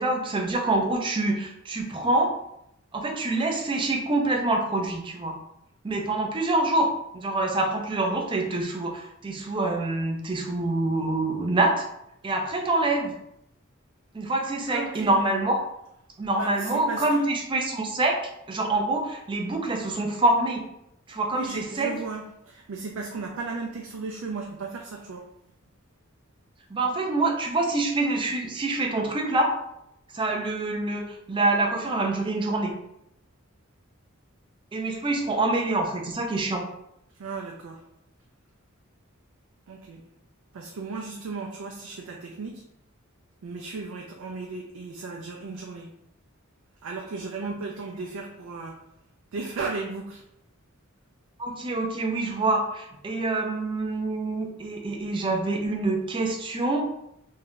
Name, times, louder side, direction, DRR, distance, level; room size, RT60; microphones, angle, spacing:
voice 1, 0.0-2.4 2.9-5.4 5.8-11.8 12.2-13.1 14.1-15.6 16.2-18.2 18.5-20.6 21.1-21.9 26.7-29.5 30.1-32.7 34.7-36.6 47.4-47.5 51.4-56.8, right 2 dB, 25° right, 2 dB, 0.4 m, -26 dB
voice 2, 14.7-15.2 16.3-17.3 21.3-25.3 37.2-37.8 39.7-40.0 40.5-42.6 43.4-45.9 46.8-48.8 49.3-50.2, right 4 dB, 85° right, 0 dB, 0.4 m, -35 dB
2.6 x 2.3 x 3.6 m, 0.79 s
head